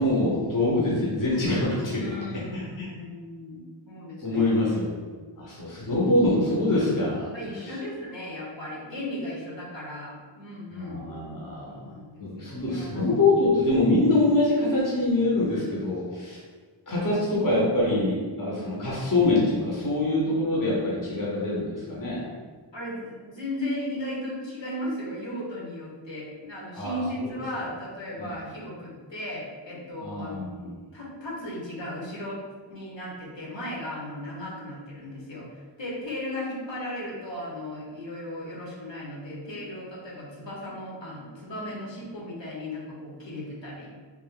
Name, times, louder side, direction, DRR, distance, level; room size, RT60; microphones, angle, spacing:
voice 1, 0.0-2.2 2.5-2.9 4.2-4.9 5.4-7.3 7.6-7.7 10.7-11.8 12.2-16.4 16.9-22.2 26.7-27.3 28.2-28.4 30.0-30.8, left 2 dB, 45° left, -5 dB, 0.9 m, -24 dB
voice 2, 2.0-3.6 3.8-4.5 7.3-11.0 11.6-13.1 13.5-13.6 22.7-32.4 32.7-43.9, left 1 dB, 70° left, -5 dB, 1.1 m, -36 dB
3.2 x 2.5 x 3.7 m, 1.5 s
wide cardioid pair, 40°, 46 cm